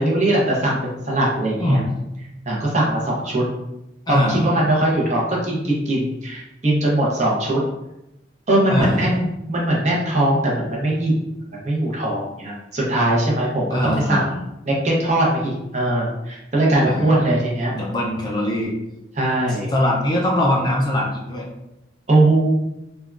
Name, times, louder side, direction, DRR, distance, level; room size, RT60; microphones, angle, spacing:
voice 1, 0.0-1.8 2.5-3.4 4.1-7.6 8.5-11.2 11.5-14.3 14.7-17.7 19.1-19.7 22.1-22.5, right 1 dB, 40° right, -3 dB, 0.7 m, -20 dB
voice 2, 1.6-1.9 4.1-4.5 8.7-9.1 13.7-14.4 16.8-17.3 17.7-18.7 19.5-21.5, left 1 dB, 20° left, -3 dB, 0.3 m, -22 dB
3.5 x 2.2 x 2.4 m, 0.90 s
head